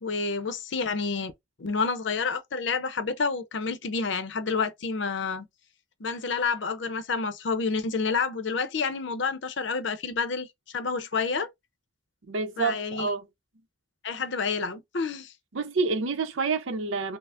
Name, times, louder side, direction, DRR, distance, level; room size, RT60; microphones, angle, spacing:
voice 1, 0.0-1.3 1.6-5.5 6.0-11.5 12.6-13.1 14.0-15.3, left 4 dB, 65° left, 0.6 m, -29 dB
voice 2, 12.3-13.3 15.5-17.2, right 4 dB, 85° right, 0.7 m, -28 dB
5.6 x 2.0 x 2.4 m
head